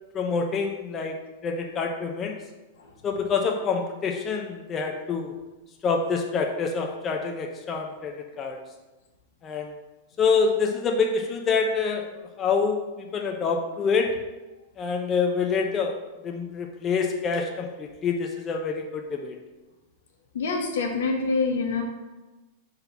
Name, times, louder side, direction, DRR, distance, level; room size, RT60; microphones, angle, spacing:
voice 1, 0.1-1.2 1.4-2.3 3.0-5.3 5.8-8.6 9.4-9.7 10.2-14.1 14.8-16.0 16.2-19.4, left 5 dB, 25° left, 2 dB, 0.6 m, -26 dB
voice 2, 20.3-21.8, left 4 dB, 80° left, 1 dB, 1.3 m, -26 dB
4.3 x 4.0 x 5.5 m, 1.1 s
hypercardioid pair, 130°, 0 cm